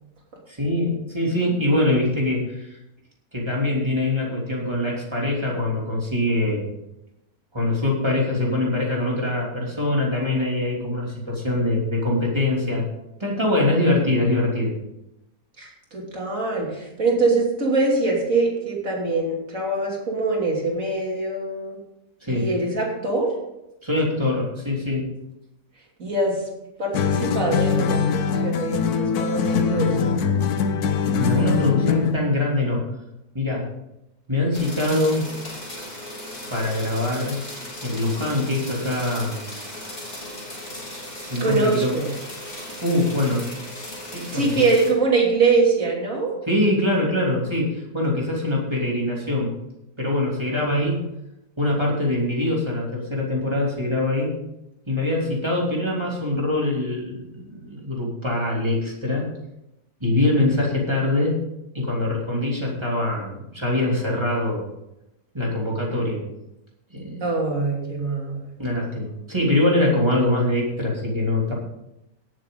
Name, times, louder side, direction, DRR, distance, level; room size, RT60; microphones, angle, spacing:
voice 1, 0.5-2.8 3.3-6.6 7.5-12.9 13.2-14.8 22.2-22.5 23.8-25.1 31.2-32.8 33.3-33.7 34.3-35.3 36.5-37.4 37.8-39.4 41.3-42.0 42.8-43.5 44.1-44.7 46.5-49.5 50.0-51.0 51.6-54.3 54.9-59.3 60.0-61.4 61.7-64.6 65.3-66.2 66.9-67.3 68.6-71.5, left 1 dB, 15° right, -3 dB, 3.1 m, -23 dB
voice 2, 15.6-21.8 22.3-23.3 26.0-26.4 26.8-30.3 41.4-42.2 44.3-46.3 50.5-51.0 60.3-60.5 67.2-68.5, right 3 dB, 50° right, -2 dB, 3.4 m, -23 dB
sound 1, 26.9-32.3, left 6 dB, 65° left, 1.2 m, -22 dB
sound 2, 34.5-44.9, left 1 dB, 25° left, 3.4 m, -37 dB
18.0 x 7.7 x 3.9 m, 0.88 s
omnidirectional pair, 1.9 m